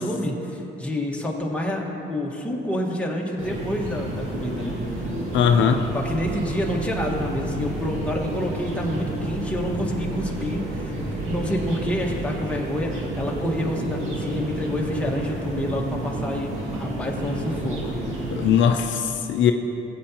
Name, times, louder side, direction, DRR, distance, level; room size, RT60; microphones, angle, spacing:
voice 1, 0.0-5.1 5.9-11.0 11.2-17.9, left 1 dB, 5° left, -2 dB, 1.6 m, -28 dB
sound 1, 3.4-18.6, right 1 dB, 85° right, 2.1 m, -30 dB
voice 2, 5.3-5.8 18.3-19.5, left 8 dB, 70° left, 5 dB, 0.6 m, -19 dB
16.5 x 8.2 x 3.0 m, 2.8 s
cardioid pair, 90°, 20 cm